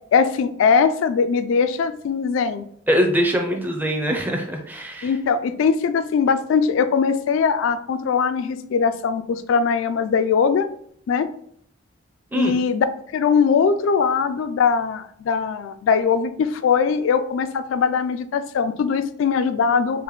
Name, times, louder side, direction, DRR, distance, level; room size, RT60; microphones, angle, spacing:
voice 1, 0.1-2.6 5.0-10.7 11.1-11.3 12.3-12.9 13.1-20.0, left 6 dB, 80° left, 10 dB, 0.3 m, -21 dB
voice 2, 2.9-5.1 12.3-12.5, equal, 10° right, 2 dB, 0.4 m, -23 dB
4.8 x 2.1 x 3.1 m, 0.65 s
head